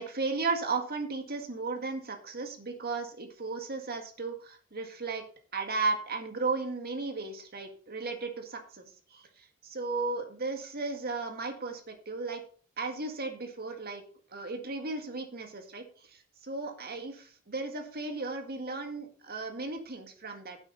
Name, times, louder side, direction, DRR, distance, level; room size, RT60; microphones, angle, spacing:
voice 1, 0.0-5.2 5.5-8.9 9.1-12.4 12.8-14.0 14.3-20.6, right 3 dB, 45° right, 5 dB, 1.9 m, -35 dB
10.5 x 8.2 x 4.1 m, 0.42 s
head